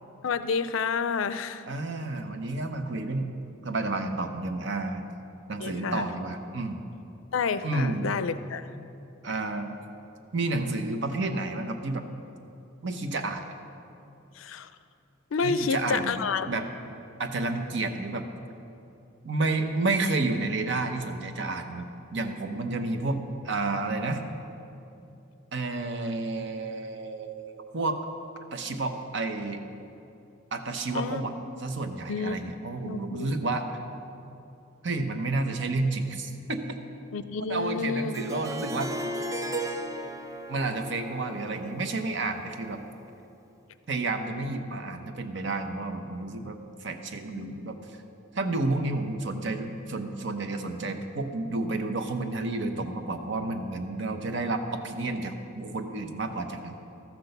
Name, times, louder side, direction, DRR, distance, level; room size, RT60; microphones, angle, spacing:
voice 1, 0.2-1.7 5.6-6.1 7.3-8.7 14.3-14.7 15.3-16.5 30.9-31.2 32.1-32.5 32.8-33.4 37.1-38.1 47.3-47.6, left 5 dB, 90° left, 12 dB, 0.5 m, -29 dB
voice 2, 1.7-3.3 3.6-5.0 5.5-6.8 7.6-8.1 9.2-9.7 10.3-12.1 12.8-13.4 15.4-16.2 16.5-16.7 17.2-18.3 19.2-24.2 25.5-28.0 28.5-29.6 30.5-31.3 31.6-33.7 34.8-36.6 37.5-39.1 40.5-42.8 43.9-47.8 48.3-56.7, right 2 dB, 65° right, 7 dB, 0.8 m, -30 dB
Harp, 38.1-43.1, right 1 dB, 15° right, 0.5 m, -36 dB
13.5 x 6.0 x 6.7 m, 2.7 s
head